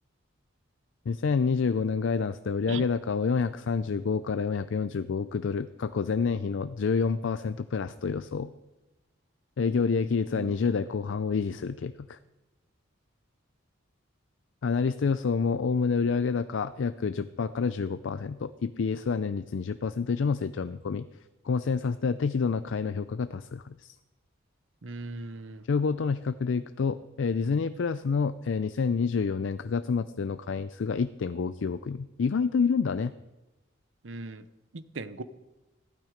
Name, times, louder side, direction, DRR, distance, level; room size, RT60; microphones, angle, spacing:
voice 1, 1.1-8.5 9.6-12.2 14.6-21.1 21.4-24.0 25.7-33.1, left 5 dB, 65° left, 12 dB, 0.4 m, -28 dB
voice 2, 24.8-25.6 34.0-34.4 34.7-35.2, right 3 dB, 70° right, 13 dB, 0.8 m, -38 dB
15.5 x 12.0 x 5.1 m, 1.0 s
head